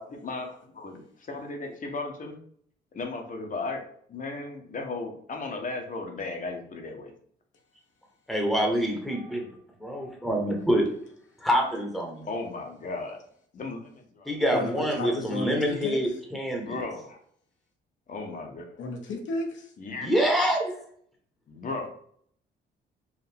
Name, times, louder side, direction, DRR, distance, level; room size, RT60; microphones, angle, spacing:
voice 1, 0.1-2.4 2.9-7.1 12.3-13.2 13.5-14.3 16.6-17.2 18.1-18.8 19.8-20.2 21.5-21.9, left 3 dB, 40° left, 3 dB, 0.9 m, -36 dB
voice 2, 8.3-9.5 9.8-10.9 11.4-12.3 14.3-16.8 20.0-20.8, equal, ahead, 1 dB, 1.1 m, -26 dB
voice 3, 14.5-16.0 18.8-19.7, left 2 dB, 70° left, 2 dB, 1.0 m, -32 dB
4.7 x 2.5 x 3.4 m, 0.63 s
cardioid pair, 90°, 20 cm